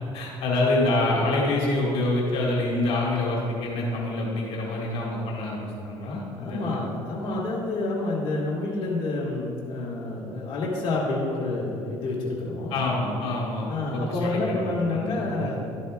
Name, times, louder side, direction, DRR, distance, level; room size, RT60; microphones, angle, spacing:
voice 1, 0.1-6.8 12.7-15.5, left 2 dB, 75° left, -3 dB, 1.8 m, -26 dB
voice 2, 6.3-12.7 13.6-15.6, left 2 dB, 55° left, -5 dB, 1.7 m, -28 dB
12.0 x 8.2 x 2.3 m, 2.5 s
cardioid pair, 90°, 10 cm